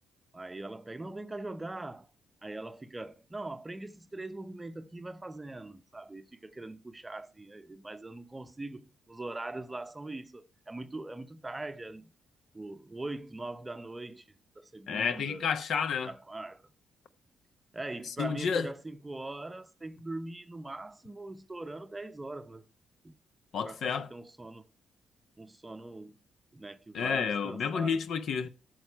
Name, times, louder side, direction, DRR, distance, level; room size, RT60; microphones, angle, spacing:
voice 1, 0.3-2.1 2.4-12.1 12.5-14.3 14.6-15.5 16.0-16.7 17.7-22.7 23.0-23.2 23.6-24.7 25.4-26.2 26.5-28.0 28.4-28.5, right 2 dB, 15° right, 0.7 m, -42 dB
voice 2, 14.9-16.1 18.2-18.7 23.5-24.1 26.9-28.5, left 6 dB, 65° left, 0.8 m, -30 dB
12.5 x 6.4 x 4.5 m
cardioid pair, 90°, 0 cm